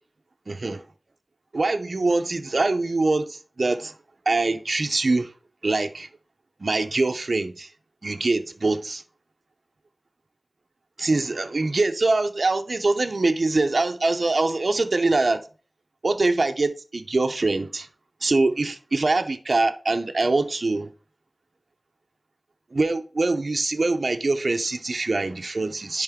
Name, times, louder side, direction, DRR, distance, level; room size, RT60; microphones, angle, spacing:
voice 1, 0.5-0.8 1.5-3.9 4.3-5.3 5.6-6.1 6.6-7.7 8.0-9.0 11.0-15.4 16.0-17.9 18.2-20.9 22.7-26.0, right 3 dB, 65° right, 0.7 m, -23 dB
10.5 x 3.7 x 3.7 m
wide cardioid pair, 65°, 0 cm